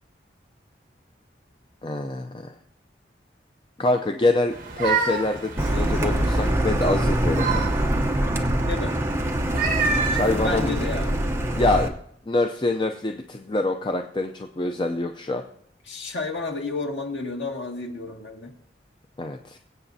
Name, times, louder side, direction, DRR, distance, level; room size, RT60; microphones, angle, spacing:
voice 1, 1.8-2.5 3.8-7.6 10.1-10.8 11.5-11.9 12.3-15.4 19.2-19.6, left 2 dB, 25° left, 5 dB, 0.5 m, -25 dB
sound 1, 4.5-6.6 7.0-8.2 9.4-11.2, right 5 dB, 50° right, 1.5 m, -28 dB
Car, 5.6-11.9, right 1 dB, 15° right, 0.8 m, -24 dB
voice 2, 10.4-11.2 15.9-18.5, left 3 dB, 85° left, 2 dB, 1.9 m, -31 dB
23.0 x 8.2 x 2.7 m, 0.69 s
head